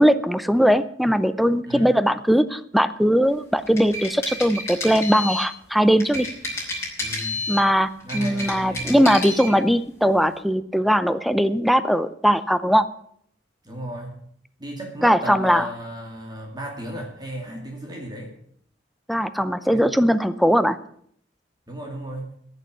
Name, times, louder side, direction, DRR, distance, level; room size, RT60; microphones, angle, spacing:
voice 1, 0.0-6.3 7.5-12.9 15.0-15.7 19.1-20.8, equal, ahead, 13 dB, 0.6 m, -20 dB
sound 1, 3.6-5.5 6.0-7.7 8.0-9.5, left 2 dB, 15° left, 5.4 m, -30 dB
voice 2, 7.0-7.4 8.0-9.1 13.6-14.2 14.6-18.3 19.7-19.9 21.7-22.3, right 1 dB, 25° right, 0 dB, 2.6 m, -34 dB
14.5 x 7.0 x 8.5 m, 0.67 s
head